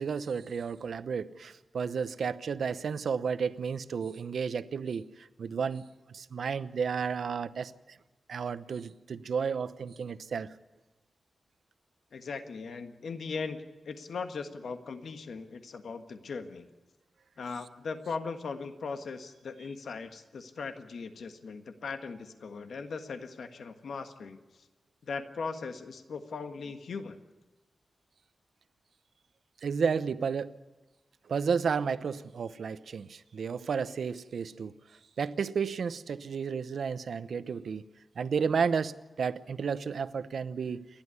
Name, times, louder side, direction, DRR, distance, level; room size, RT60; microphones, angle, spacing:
voice 1, 0.0-8.0 8.3-10.5 29.6-30.5 31.3-34.7 35.2-37.8 38.2-40.9, right 6 dB, 75° right, 14 dB, 0.8 m, -32 dB
voice 2, 12.1-16.7 17.4-24.7 25.0-27.2, left 4 dB, 80° left, 8 dB, 1.5 m, -39 dB
29.0 x 12.0 x 9.7 m, 1.1 s
wide cardioid pair, 170°, 0 cm